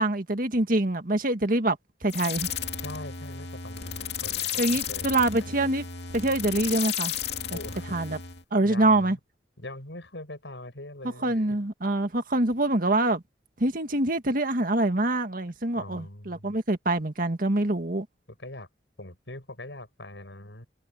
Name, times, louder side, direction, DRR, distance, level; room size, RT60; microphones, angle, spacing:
voice 1, 0.0-2.5 4.6-5.8 6.1-7.1 7.9-8.2 8.5-9.2 11.2-13.2 13.6-18.1, right 2 dB, 50° right, 1.9 m, -25 dB
sound 1, 2.1-8.4, left 8 dB, 70° left, 2.4 m, -33 dB
voice 2, 2.8-5.7 7.5-8.0 8.6-9.2 9.6-11.4 15.8-16.5 18.4-18.7 19.0-20.7, left 1 dB, 90° left, 7.2 m, -42 dB
head